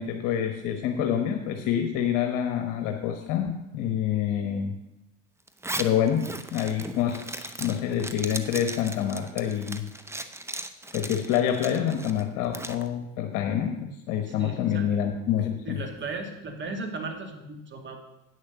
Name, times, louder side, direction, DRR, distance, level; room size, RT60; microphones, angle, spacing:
voice 1, 0.0-4.7 5.8-6.2 6.5-9.8 10.9-15.8, left 9 dB, 60° left, 5 dB, 1.2 m, -27 dB
Zipper (clothing), 5.5-12.8, right 2 dB, 5° right, 0.7 m, -37 dB
voice 2, 14.3-14.9 15.6-18.0, right 3 dB, 30° right, 4 dB, 2.2 m, -36 dB
9.2 x 6.6 x 6.8 m, 0.91 s
supercardioid pair, 90°, 36 cm